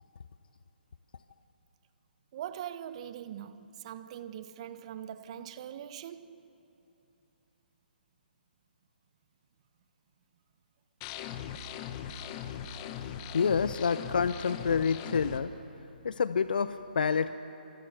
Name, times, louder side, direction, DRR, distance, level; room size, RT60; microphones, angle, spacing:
voice 1, 2.3-6.4 12.8-13.2, right 10 dB, 35° right, 1.0 m, -42 dB
sound 1, 11.0-15.4, left 9 dB, 25° left, 1.3 m, -40 dB
voice 2, 12.8-15.5 16.0-17.3, left 6 dB, 60° left, 0.7 m, -28 dB
30.0 x 25.5 x 6.8 m
figure-of-eight pair, 135°, 5 cm